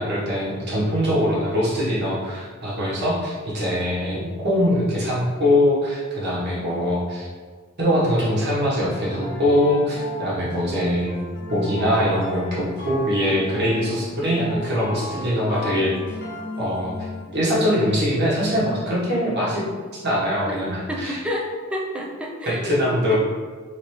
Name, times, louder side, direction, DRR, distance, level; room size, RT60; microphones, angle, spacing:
voice 1, 0.0-7.3 7.8-11.2 11.5-15.9 16.6-17.1 17.3-19.6 19.9-21.2 22.4-23.2, equal, 50° right, -6 dB, 1.3 m, -22 dB
sound 1, 8.2-17.4, left 1 dB, 55° left, 1.0 m, -35 dB
voice 2, 20.9-23.2, equal, 5° right, -2 dB, 0.5 m, -30 dB
3.5 x 3.5 x 3.1 m, 1.5 s
head